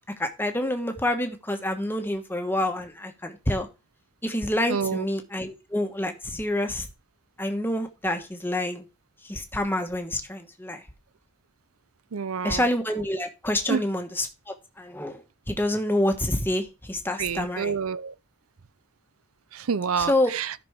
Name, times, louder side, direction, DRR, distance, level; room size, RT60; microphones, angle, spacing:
voice 1, 0.2-3.7 4.2-6.9 7.4-8.8 9.2-10.8 12.4-17.7 20.0-20.3, left 1 dB, 10° left, 1.3 m, -27 dB
voice 2, 4.7-5.0 12.1-12.6 13.7-13.8 17.2-18.1 19.5-20.5, right 6 dB, 85° right, 0.6 m, -28 dB
13.5 x 6.0 x 3.6 m
head